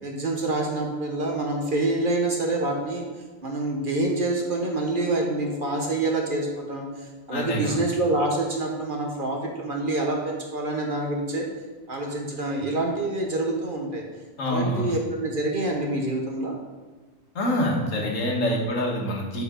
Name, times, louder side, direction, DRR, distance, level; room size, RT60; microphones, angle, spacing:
voice 1, 0.0-3.0 3.4-11.5 11.9-14.0 14.4-16.5, right 2 dB, 45° right, 1 dB, 1.1 m, -27 dB
voice 2, 7.3-7.8 14.4-14.9 17.4-19.4, equal, 75° left, -1 dB, 1.7 m, -26 dB
6.8 x 4.9 x 5.0 m, 1.3 s
omnidirectional pair, 1.4 m